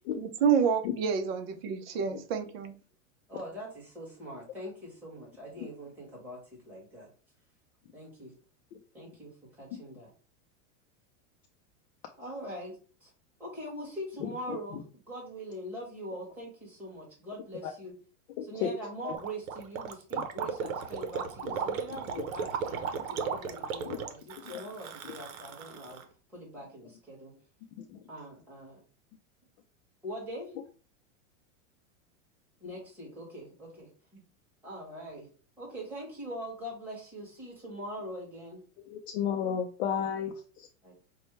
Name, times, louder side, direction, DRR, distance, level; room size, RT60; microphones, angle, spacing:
voice 1, 0.2-2.7, right 7 dB, 45° right, 0.7 m, -28 dB
voice 2, 3.3-7.1 7.9-8.3 8.9-10.1 12.2-13.1 13.4-18.0 18.4-26.0 26.3-27.3 28.1-28.8 30.0-30.5 32.6-34.2 34.6-35.3 35.6-38.6 40.8-40.9, equal, 5° right, 1.4 m, -42 dB
voice 3, 14.2-14.6 17.6-17.7 18.4-18.7 19.0-19.1 20.1-20.2 23.8-24.0 24.5-24.6 27.8-28.0 38.9-40.7, left 8 dB, 50° left, 0.5 m, -33 dB
Gurgling, 19.1-26.0, right 6 dB, 75° right, 0.8 m, -35 dB
5.3 x 2.2 x 3.2 m
supercardioid pair, 165°, 41 cm